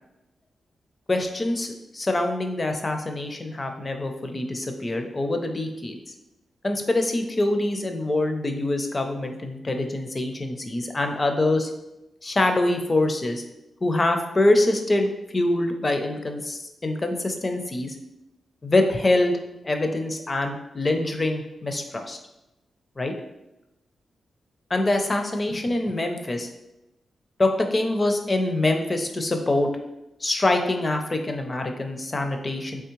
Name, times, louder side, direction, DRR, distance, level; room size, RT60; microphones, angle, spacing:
voice 1, 1.1-6.1 6.6-11.7 12.2-13.4 13.8-17.9 18.6-19.4 19.6-22.2 23.0-23.1 24.7-26.5 27.4-29.7 30.2-32.8, left 2 dB, 25° left, 5 dB, 0.4 m, -24 dB
3.4 x 3.0 x 3.0 m, 0.95 s
wide cardioid pair, 115°, 0 cm